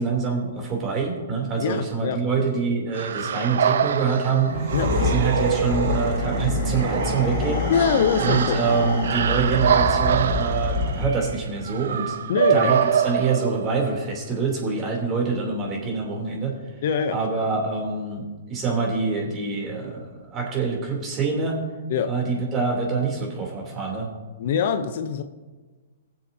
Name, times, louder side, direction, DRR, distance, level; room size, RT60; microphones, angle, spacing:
voice 1, 0.0-4.5 5.0-7.7 8.2-12.1 12.5-16.5 17.1-21.6 22.1-24.1, right 4 dB, 25° right, -1 dB, 3.2 m, -25 dB
voice 2, 1.6-2.5 4.7-5.0 7.7-8.6 12.3-12.7 16.8-17.4 21.9-22.1 24.4-25.2, left 7 dB, 60° left, 10 dB, 0.7 m, -24 dB
sound 1, 2.9-14.0, right 8 dB, 70° right, 0.5 m, -25 dB
sound 2, 4.5-11.3, left 4 dB, 35° left, 2.3 m, -27 dB
21.0 x 7.4 x 2.8 m, 1.3 s
hypercardioid pair, 130°, 0 cm